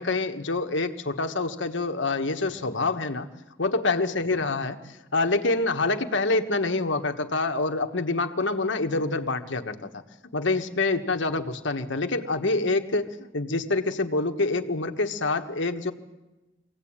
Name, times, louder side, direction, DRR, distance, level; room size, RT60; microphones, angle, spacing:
voice 1, 0.0-3.3 3.6-10.0 10.3-15.9, left 3 dB, 70° left, 6 dB, 1.4 m, -26 dB
24.0 x 17.0 x 8.8 m, 1.1 s
head